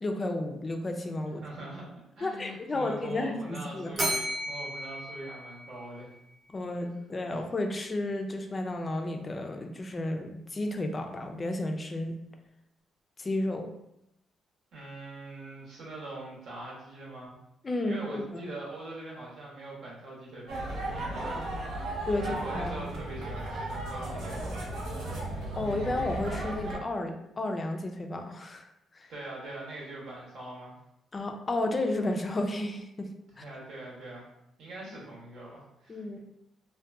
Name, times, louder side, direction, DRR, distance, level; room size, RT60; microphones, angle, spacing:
voice 1, 0.0-1.4 2.2-4.0 6.5-12.2 13.2-13.7 17.6-18.5 21.1-21.4 22.1-22.9 25.6-28.7 28.9-29.1 31.1-33.4 35.9-36.2, left 2 dB, 30° left, 4 dB, 0.3 m, -32 dB
voice 2, 1.4-1.9 2.2-6.1 14.7-17.3 17.9-21.9 22.2-24.7 29.1-30.8 33.3-34.3 34.6-36.2, right 2 dB, 70° right, -4 dB, 0.9 m, -43 dB
Bell, 3.9-6.2, right 1 dB, 30° right, 0.7 m, -34 dB
sound 1, 20.5-26.8, right 1 dB, 90° right, 0.7 m, -35 dB
2.6 x 2.1 x 2.4 m, 0.82 s
cardioid pair, 90°, 0 cm